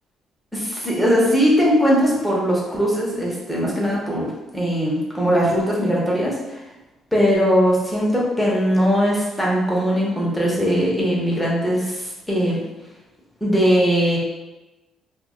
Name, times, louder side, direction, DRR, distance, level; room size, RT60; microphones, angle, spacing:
voice 1, 0.5-6.6 7.1-12.6 13.4-14.2, equal, 5° left, -5 dB, 0.6 m, -20 dB
2.2 x 2.1 x 3.5 m, 1.1 s
cardioid pair, 145°, 0 cm